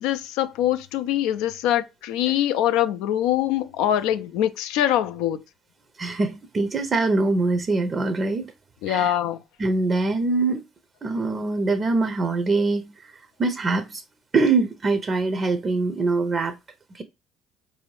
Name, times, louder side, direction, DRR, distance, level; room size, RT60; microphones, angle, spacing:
voice 1, 0.0-5.4 8.8-9.4, left 12 dB, 80° left, 0.3 m, -23 dB
voice 2, 6.0-8.5 8.9-9.1 9.6-10.6 11.0-14.0 14.3-16.6 16.9-17.0, right 3 dB, 40° right, 0.5 m, -23 dB
4.1 x 2.7 x 3.1 m
supercardioid pair, 70°, 0 cm